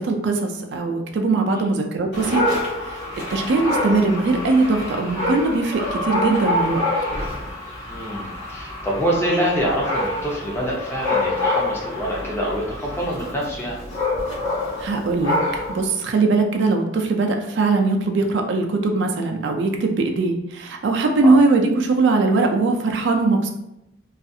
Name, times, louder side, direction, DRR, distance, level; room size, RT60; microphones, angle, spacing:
voice 1, 0.0-2.4 2.8-3.0 3.3-6.8 14.8-23.5, right 3 dB, 65° right, 4 dB, 0.3 m, -20 dB
Dog, 2.1-15.9, left 2 dB, 70° left, 1.0 m, -26 dB
voice 2, 7.9-13.8 21.2-21.4, equal, 15° left, -3 dB, 0.5 m, -25 dB
2.4 x 2.4 x 2.6 m, 0.87 s
head